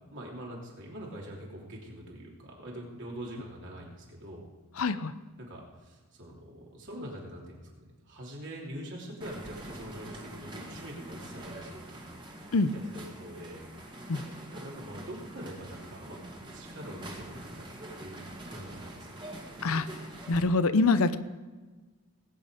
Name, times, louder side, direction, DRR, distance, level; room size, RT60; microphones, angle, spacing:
voice 1, 0.1-4.4 5.4-12.0 12.9-13.6 14.5-16.2 16.5-17.7 18.0-19.2, right 1 dB, 55° right, -2 dB, 3.2 m, -44 dB
voice 2, 4.8-5.1 12.5-12.7 14.1-14.2 19.6-19.9 20.3-21.2, left 3 dB, 65° left, 13 dB, 0.7 m, -25 dB
sound 1, 9.2-20.4, right 1 dB, 20° right, 1.9 m, -45 dB
19.0 x 8.8 x 5.1 m, 1.3 s
head